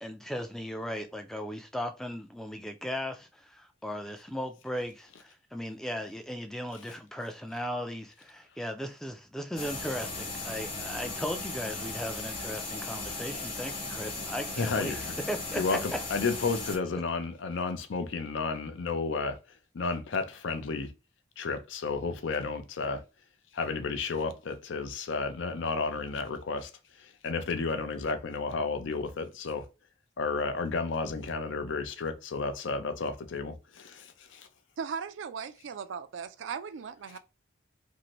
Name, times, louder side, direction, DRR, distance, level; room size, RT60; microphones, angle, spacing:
voice 1, 0.0-16.0, equal, ahead, 0.3 m, -37 dB
sound 1, 9.6-16.8, left 3 dB, 30° left, 0.9 m, -37 dB
voice 2, 14.6-15.1 15.6-19.4 19.7-20.9 21.4-23.0 23.5-26.7 27.0-29.7 30.2-34.5, left 4 dB, 75° left, 0.5 m, -32 dB
voice 3, 34.8-37.2, right 6 dB, 75° right, 0.4 m, -38 dB
2.7 x 2.5 x 3.0 m
head